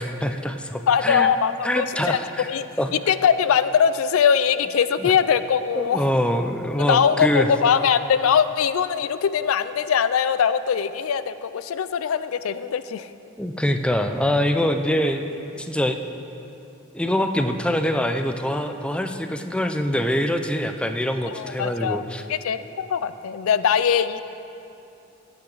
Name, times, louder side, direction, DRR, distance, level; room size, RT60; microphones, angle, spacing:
voice 1, 0.0-1.3 1.6-2.5 2.8-3.0 5.0-5.1 5.8-7.5 13.4-16.0 16.9-22.2, equal, 5° left, 6 dB, 0.4 m, -24 dB
voice 2, 0.9-2.2 2.5-2.7 2.9-6.0 6.9-13.1 21.3-22.0 22.3-24.2, left 7 dB, 75° left, 13 dB, 0.4 m, -21 dB
16.5 x 8.8 x 3.9 m, 2.8 s
head